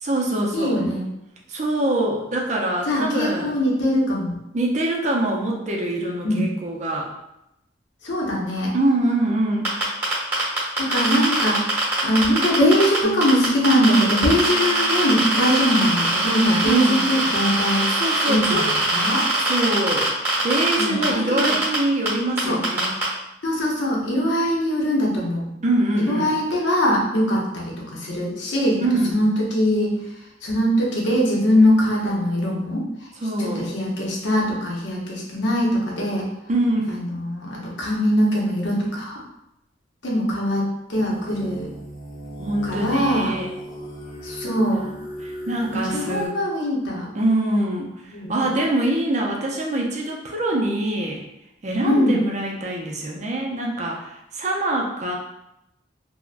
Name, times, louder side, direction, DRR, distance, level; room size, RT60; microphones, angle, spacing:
voice 1, 0.0-0.8 1.5-3.5 4.5-7.1 8.7-9.8 16.6-17.1 17.9-18.7 19.4-20.1 20.4-22.9 25.6-26.3 28.8-29.2 33.2-33.7 36.5-36.9 42.4-43.5 45.2-46.3 47.1-51.2 51.6-55.1, right 1 dB, 35° right, -1 dB, 0.4 m, -24 dB
voice 2, 0.5-1.1 2.9-4.4 6.2-6.5 8.0-8.7 10.8-17.9 18.3-19.3 20.8-21.6 22.4-22.6 23.4-25.5 26.0-28.8 29.1-30.0 30.4-33.1 33.4-36.3 36.9-39.2 40.0-41.7 42.6-43.4 44.2-44.9 45.7-47.1 48.1-48.5 51.8-52.2, equal, 70° left, -2 dB, 0.7 m, -22 dB
sound 1, 9.7-13.0 13.2-21.1 21.4-21.8 22.1-22.2 22.4-23.0, right 2 dB, 10° right, 1.0 m, -22 dB
sound 2, 13.0-19.1 19.5-20.8, right 1 dB, 10° left, 0.7 m, -39 dB
sound 3, 40.9-46.3, equal, 50° left, 1.3 m, -36 dB
3.3 x 2.1 x 2.4 m, 0.85 s
head